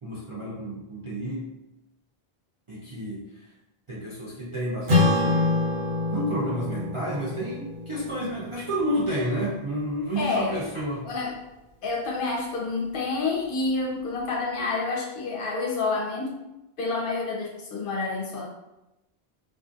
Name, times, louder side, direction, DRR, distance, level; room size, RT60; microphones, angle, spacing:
voice 1, 0.0-1.5 2.7-3.5 3.9-5.6 6.1-11.1, equal, 50° right, -6 dB, 0.3 m, -30 dB
Acoustic guitar / Strum, 4.9-9.6, left 2 dB, 75° right, 1.0 m, -26 dB
voice 2, 10.2-10.7 11.0-11.4 11.8-16.4 16.8-18.5, left 3 dB, 65° left, -2 dB, 0.7 m, -28 dB
2.5 x 2.3 x 2.4 m, 0.93 s
omnidirectional pair, 1.0 m